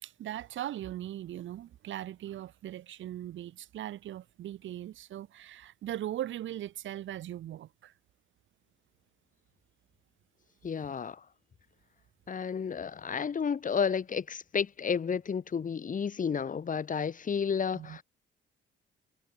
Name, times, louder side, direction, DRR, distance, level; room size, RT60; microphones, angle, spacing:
voice 1, 0.0-7.9 17.7-18.0, right 12 dB, 75° right, 3.0 m, -39 dB
voice 2, 10.6-11.3 12.3-18.0, left 6 dB, 40° left, 1.9 m, -31 dB
cardioid pair, 90°, 20 cm